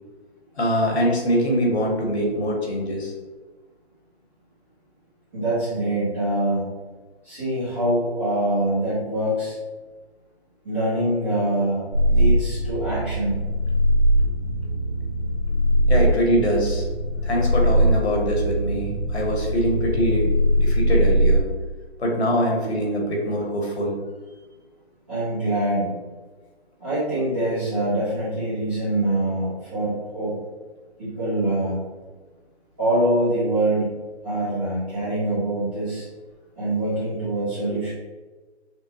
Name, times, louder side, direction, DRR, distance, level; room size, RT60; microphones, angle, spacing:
voice 1, 0.6-3.1 15.9-16.8 17.2-21.4 22.0-23.9, equal, 75° left, -1 dB, 1.4 m, -23 dB
voice 2, 5.3-6.6 7.2-9.5 10.6-13.4 25.1-26.0 26.8-30.4 31.0-31.8 32.8-34.0 34.2-36.0 36.6-37.9, right 1 dB, 10° right, -15 dB, 0.6 m, -24 dB
sound 1, 11.9-21.4, equal, 50° right, 1.0 m, -21 dB
5.9 x 2.1 x 2.9 m, 1.3 s
hypercardioid pair, 160°, 33 cm